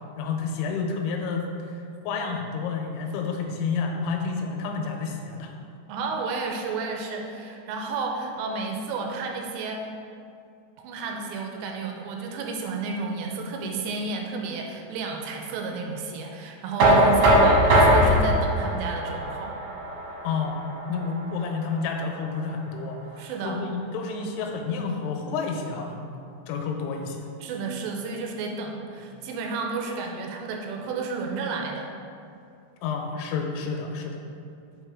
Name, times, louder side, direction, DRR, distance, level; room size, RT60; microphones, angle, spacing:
voice 1, 0.2-1.4 2.0-5.5 20.2-20.6 20.9-23.0 23.4-26.1 26.5-27.2 32.8-34.2, left 5 dB, 90° left, 2 dB, 3.0 m, -29 dB
voice 2, 5.9-9.8 10.8-19.5 23.2-23.6 27.4-31.9, right 4 dB, 85° right, 2 dB, 2.6 m, -32 dB
Knock, 16.8-22.6, equal, 70° right, 2.7 m, -21 dB
6.2 x 5.6 x 3.6 m, 2.5 s
omnidirectional pair, 5.4 m